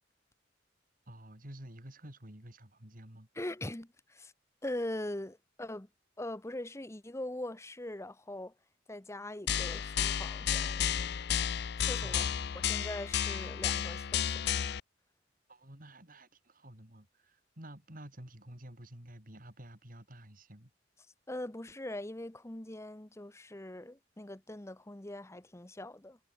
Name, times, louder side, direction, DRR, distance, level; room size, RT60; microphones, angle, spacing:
voice 1, 1.1-3.3 12.0-12.4 15.5-20.7, right 1 dB, 50° right, 4.6 m, -50 dB
voice 2, 3.3-4.3 4.6-5.9 6.2-8.5 8.9-11.1 11.8-12.2 12.7-14.4 21.3-26.2, left 1 dB, 15° left, 1.0 m, -41 dB
sound 1, 9.5-14.8, left 9 dB, 65° left, 0.5 m, -32 dB
head